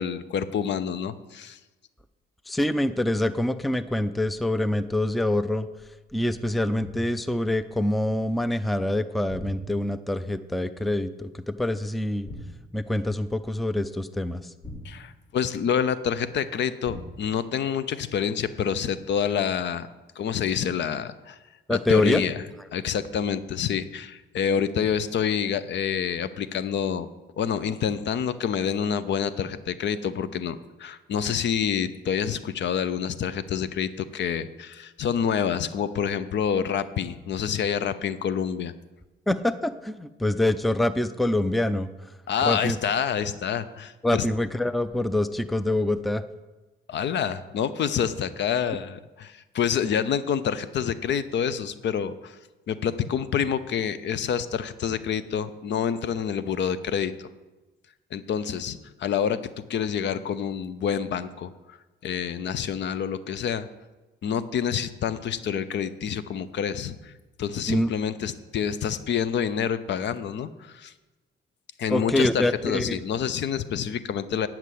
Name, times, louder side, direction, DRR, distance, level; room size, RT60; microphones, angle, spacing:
voice 1, 0.0-1.6 14.8-19.9 20.2-21.4 21.7-22.4 22.7-27.1 27.4-38.7 42.3-44.3 46.9-52.4 52.7-57.3 58.1-59.4 59.7-61.8 62.0-63.7 64.2-67.1 67.4-70.9 71.8-74.5, left 8 dB, 65° left, 14 dB, 0.7 m, -27 dB
voice 2, 2.5-5.7 6.1-12.3 12.7-14.5 21.7-22.2 39.3-41.9 42.4-42.8 44.0-46.2 67.7-67.9 71.9-73.0, left 1 dB, ahead, 13 dB, 0.4 m, -25 dB
sound 1, 6.8-7.3 9.3-10.0 12.3-12.8 14.6-15.5 16.8-17.4, left 1 dB, 35° left, 3.1 m, -40 dB
9.1 x 6.0 x 8.4 m, 1.1 s
cardioid pair, 90°, 20 cm